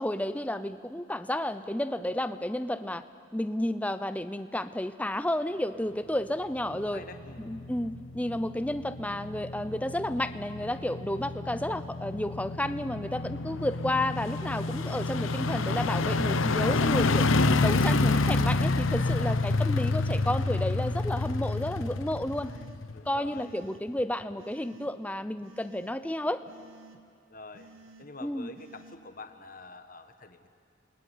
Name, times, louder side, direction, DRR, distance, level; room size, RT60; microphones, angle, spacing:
voice 1, 0.0-3.0 3.3-7.0 7.4-17.3 17.6-22.5 23.1-26.4 28.2-28.5, left 1 dB, 5° left, 11 dB, 0.7 m, -31 dB
sound 1, 6.7-23.3 23.6-23.7, left 3 dB, 80° left, 0.9 m, -29 dB
voice 2, 6.7-7.4 22.9-23.5 27.3-27.7 28.0-30.5, left 3 dB, 40° left, 8 dB, 1.5 m, -47 dB
sound 2, 16.0-16.5 17.0-17.5 18.0-18.6 19.1-19.6 20.1-20.7 21.2-21.7 22.3-22.8 23.3-23.8 24.4-24.9 25.4-26.0 26.5-27.0 27.5-28.1 28.6-29.0, right 2 dB, 80° right, 1.9 m, -53 dB
28.0 x 21.0 x 9.5 m, 2.5 s
head